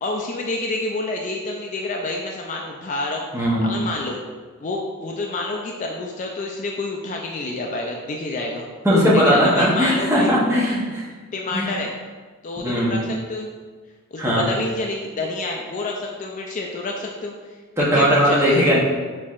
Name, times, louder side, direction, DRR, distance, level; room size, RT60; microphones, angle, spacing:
voice 1, 0.0-3.3 3.6-4.2 4.6-8.7 9.1-10.3 11.3-12.0 12.4-13.0 13.3-13.5 14.1-17.3 17.9-18.8, left 2 dB, 35° left, 0 dB, 0.3 m, -28 dB
voice 2, 3.3-3.7 8.8-11.1 11.5-11.7 12.6-13.0 14.2-14.4 17.8-18.8, equal, 10° right, -6 dB, 0.8 m, -18 dB
4.4 x 4.2 x 2.4 m, 1.4 s
head